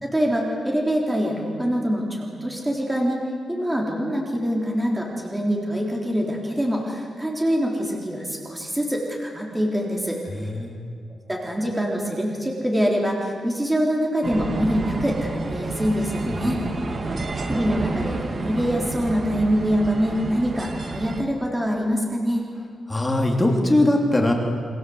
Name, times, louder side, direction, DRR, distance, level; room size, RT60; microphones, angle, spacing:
voice 1, 0.0-10.2 11.3-16.6 17.5-22.4, equal, 10° right, -1 dB, 3.8 m, -24 dB
voice 2, 10.3-10.7 16.3-16.5 22.9-24.3, left 1 dB, 10° left, 0 dB, 3.2 m, -21 dB
sound 1, 14.2-21.2, right 3 dB, 35° right, 2.4 m, -29 dB
29.5 x 25.5 x 8.0 m, 2.1 s
wide cardioid pair, 165°, 0 cm